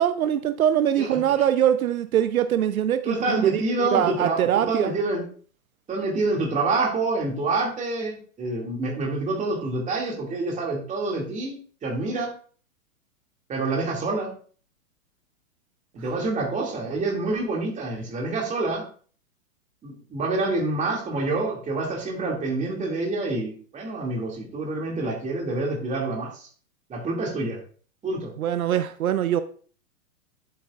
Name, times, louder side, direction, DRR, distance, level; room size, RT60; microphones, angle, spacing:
voice 1, 0.0-4.9 28.4-29.4, right 10 dB, 80° right, 0.7 m, -23 dB
voice 2, 3.0-5.2 5.9-12.3 13.5-14.3 15.9-18.8 19.8-26.5 26.9-27.6 28.0-28.3, right 3 dB, 15° right, 2.5 m, -27 dB
10.5 x 8.5 x 2.5 m
hypercardioid pair, 130°, 42 cm